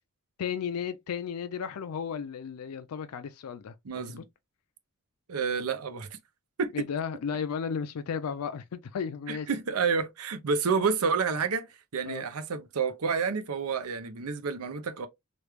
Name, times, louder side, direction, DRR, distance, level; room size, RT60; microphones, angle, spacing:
voice 1, 0.4-4.2 6.7-9.5 12.1-12.2, left 7 dB, 80° left, 0.4 m, -34 dB
voice 2, 3.9-4.2 5.3-6.2 6.6-6.7 9.3-11.7 11.9-15.1, right 5 dB, 80° right, 0.6 m, -29 dB
3.1 x 2.3 x 3.3 m
head